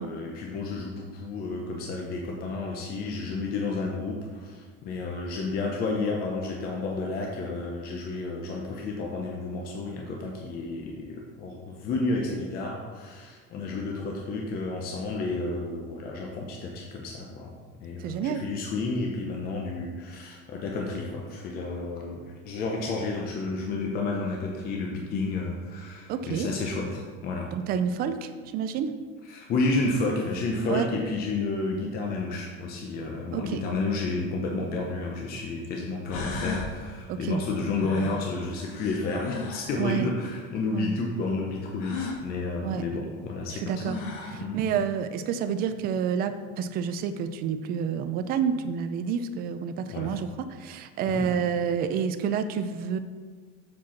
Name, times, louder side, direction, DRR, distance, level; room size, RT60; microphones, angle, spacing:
voice 1, 0.0-17.6 17.8-27.5 29.2-44.0 44.4-44.6 49.9-50.2 51.1-51.3, left 3 dB, 30° left, 0 dB, 0.7 m, -31 dB
voice 2, 18.0-18.4 26.1-26.5 27.5-28.9 30.7-30.9 33.3-33.6 37.1-37.4 39.8-40.1 40.7-40.9 42.6-42.8 43.6-44.0 44.3-50.3 50.6-53.0, right 7 dB, 30° right, 10 dB, 0.4 m, -29 dB
sound 1, 34.6-34.7 35.6-35.7 36.1-36.7 37.8-39.8 41.8-42.2 43.4-43.5 43.8-44.4, left 4 dB, 45° left, 1.2 m, -35 dB
7.5 x 4.5 x 5.7 m, 1.5 s
cardioid pair, 175°, 30 cm